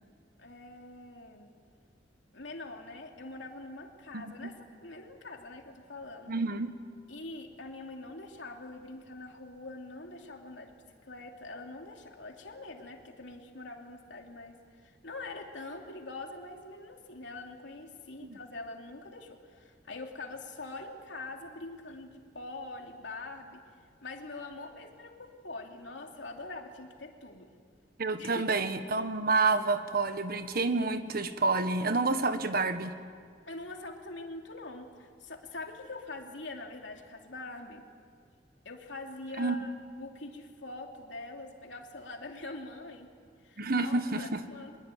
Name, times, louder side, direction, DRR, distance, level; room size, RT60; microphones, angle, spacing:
voice 1, 0.4-1.5 2.3-4.5 4.8-6.3 7.1-23.6 24.0-27.5 28.2-28.4 33.5-37.9 38.6-43.1 43.4-44.8, left 2 dB, 90° left, 2 dB, 2.9 m, -44 dB
voice 2, 4.1-4.5 6.3-6.7 18.2-18.4 28.0-32.9 39.4-39.6 43.6-44.4, right 3 dB, 55° right, 9 dB, 1.5 m, -29 dB
24.5 x 22.0 x 9.3 m, 2.1 s
head